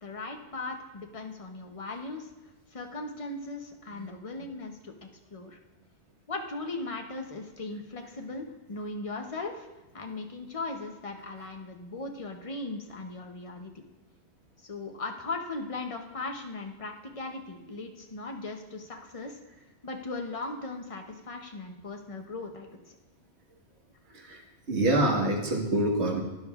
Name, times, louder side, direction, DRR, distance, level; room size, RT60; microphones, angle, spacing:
voice 1, 0.0-2.3 2.7-5.6 6.3-9.7 9.9-13.8 14.6-19.4 19.8-22.7, left 3 dB, 35° left, 3 dB, 0.8 m, -38 dB
voice 2, 24.7-26.2, right 1 dB, 80° right, -1 dB, 1.7 m, -25 dB
12.0 x 10.0 x 2.4 m, 1.1 s
omnidirectional pair, 1.1 m